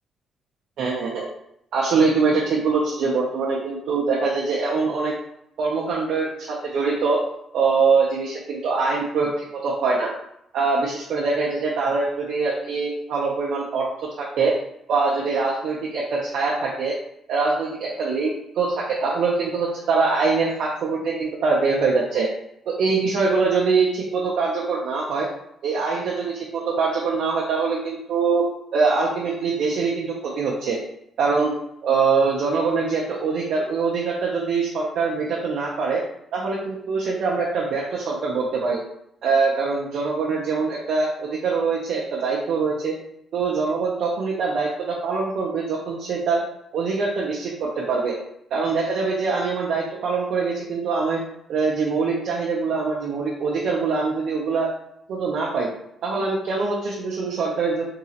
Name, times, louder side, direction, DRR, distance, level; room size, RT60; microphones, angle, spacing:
voice 1, 0.8-1.3 1.7-5.1 5.6-7.2 7.5-10.1 10.5-14.5 14.9-17.0 17.3-22.3 22.7-25.3 25.6-28.4 28.7-30.8 31.2-31.5 31.8-36.0 36.3-38.8 39.2-42.9 43.3-46.4 46.7-48.2 48.5-51.2 51.5-54.7 55.1-55.7 56.0-57.8, right 4 dB, 75° right, -4 dB, 0.7 m, -23 dB
3.8 x 2.8 x 2.9 m, 0.75 s
cardioid pair, 90°, 0 cm